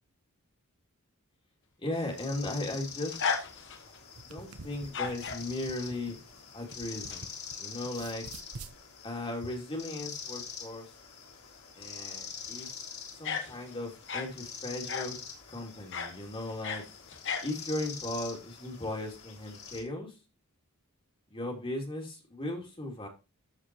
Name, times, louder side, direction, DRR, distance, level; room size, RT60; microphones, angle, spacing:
voice 1, 1.8-3.2 4.2-6.2 6.5-7.3 7.6-8.3 9.0-10.9 11.8-12.7 13.2-15.2 15.5-16.8 17.4-20.1 21.3-23.1, left 1 dB, 25° left, 0 dB, 2.9 m, -37 dB
sound 1, 1.9-19.8, left 6 dB, 75° left, 3.3 m, -45 dB
sound 2, 2.1-4.0 4.8-5.4 6.7-7.2 7.6-7.7 9.1-9.2 9.4-9.6 12.4-12.7 13.2-14.3 14.9-15.2 15.9-16.2 16.5-17.5, left 6 dB, 55° left, 1.7 m, -35 dB
sound 3, 4.0-7.5 7.8-8.8, right 3 dB, 80° right, 1.2 m, -48 dB
14.0 x 5.0 x 4.7 m, 0.29 s
head